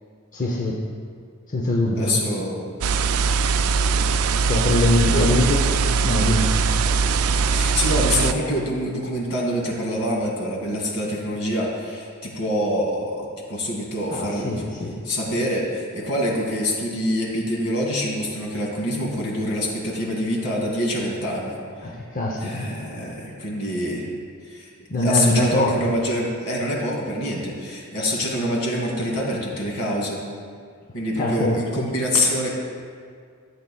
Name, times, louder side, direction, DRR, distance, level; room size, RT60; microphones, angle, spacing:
voice 1, 0.3-0.8 1.5-2.2 4.4-6.6 14.1-15.0 21.8-22.7 24.9-25.9 31.2-31.6, left 1 dB, 40° left, -2 dB, 0.7 m, -23 dB
voice 2, 2.0-2.6 5.1-5.3 7.5-14.6 15.0-21.6 22.4-24.1 24.4-24.7 25.0-30.2 30.9-32.5, equal, 75° left, -2 dB, 2.2 m, -25 dB
sound 1, 2.8-8.3, right 5 dB, 75° right, 0.4 m, -21 dB
14.0 x 7.9 x 2.3 m, 2.1 s
head